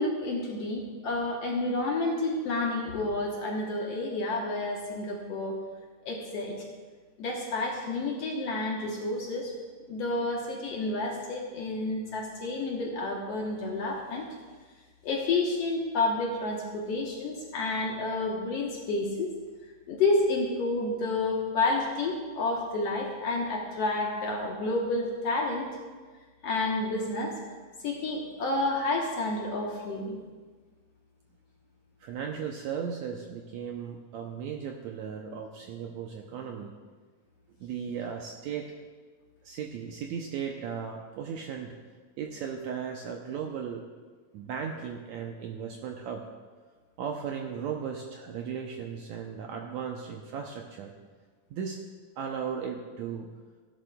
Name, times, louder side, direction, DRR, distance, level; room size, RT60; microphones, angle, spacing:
voice 1, 0.0-5.6 6.0-6.6 7.2-9.5 9.9-14.3 15.0-19.3 19.9-25.7 26.4-27.3 27.8-30.2, left 2 dB, 60° left, -1 dB, 1.9 m, -30 dB
voice 2, 32.0-36.7 37.6-38.7 39.4-41.7 42.2-43.8 44.3-46.2 47.0-50.9 51.5-51.8 52.2-53.3, right 7 dB, 75° right, 2 dB, 1.7 m, -36 dB
16.5 x 11.5 x 2.3 m, 1.4 s
omnidirectional pair, 3.8 m